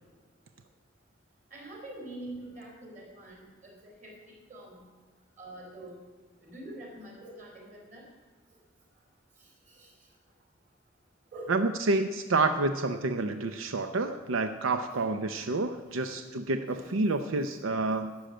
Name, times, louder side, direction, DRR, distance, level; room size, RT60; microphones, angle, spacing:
voice 1, 1.5-4.9 5.4-6.0 6.4-8.1 9.7-9.9 11.3-11.6 14.9-15.0 16.0-16.1 16.7-16.9, right 1 dB, 40° right, -1 dB, 3.7 m, -45 dB
voice 2, 11.5-18.1, right 3 dB, 85° right, 8 dB, 0.6 m, -29 dB
11.5 x 6.4 x 8.8 m, 1.4 s
head